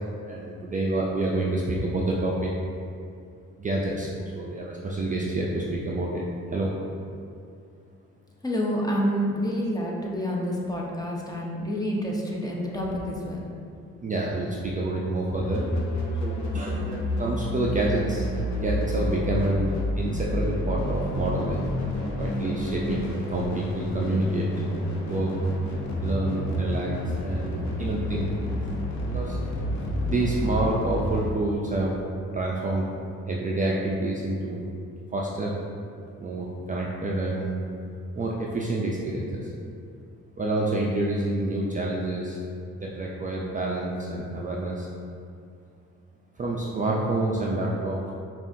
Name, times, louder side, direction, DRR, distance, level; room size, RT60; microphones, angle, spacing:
voice 1, 0.3-2.5 3.6-4.1 4.4-6.2 6.5-6.7 14.0-15.6 16.2-19.7 20.0-21.6 22.2-24.5 25.1-25.3 26.0-26.9 27.2-28.3 28.6-28.7 29.1-29.4 30.0-32.0 32.3-32.9 33.3-34.6 35.1-35.6 36.2-37.6 38.2-39.5 40.4-42.4 42.8-44.9 46.4-48.1, right 2 dB, 25° right, -3 dB, 0.4 m, -28 dB
voice 2, 8.4-13.5, equal, 15° left, -3 dB, 0.6 m, -28 dB
sound 1, 15.4-31.3, left 1 dB, 65° left, 0.8 m, -29 dB
5.3 x 2.5 x 2.6 m, 2.4 s
cardioid pair, 90°, 30 cm